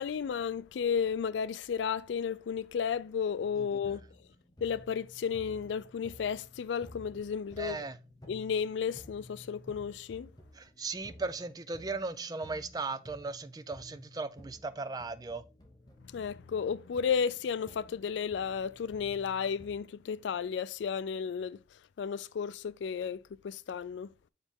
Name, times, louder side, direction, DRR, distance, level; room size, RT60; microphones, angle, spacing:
voice 1, 0.0-4.0 4.6-7.8 8.3-10.3 16.1-21.6 22.0-24.1, left 7 dB, 90° left, 0.3 m, -33 dB
sound 1, 3.4-19.8, left 1 dB, 20° left, 1.0 m, -54 dB
voice 2, 7.6-8.0 10.6-15.4, right 3 dB, 20° right, 0.3 m, -37 dB
7.1 x 4.0 x 3.7 m
head